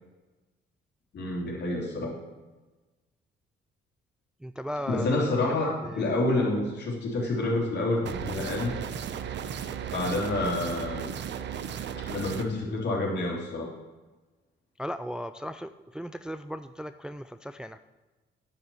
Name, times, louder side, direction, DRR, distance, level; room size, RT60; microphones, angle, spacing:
voice 1, 1.1-2.1 4.9-8.8 9.9-11.1 12.1-13.7, left 2 dB, 60° left, -2 dB, 3.5 m, -28 dB
voice 2, 4.4-5.1 5.5-6.2 14.8-17.8, equal, 5° right, 10 dB, 0.3 m, -37 dB
sound 1, 8.1-12.4, right 8 dB, 65° right, 0.8 m, -35 dB
10.0 x 6.0 x 7.0 m, 1.2 s
cardioid pair, 90°, 20 cm